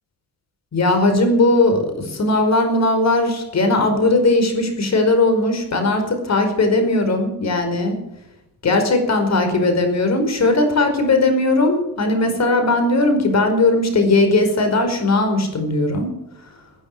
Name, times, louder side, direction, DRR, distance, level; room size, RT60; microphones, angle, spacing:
voice 1, 0.7-8.0 8.6-16.1, left 2 dB, 45° left, 6 dB, 5.0 m, -18 dB
18.0 x 9.8 x 7.8 m, 0.86 s
cardioid pair, 100°, 36 cm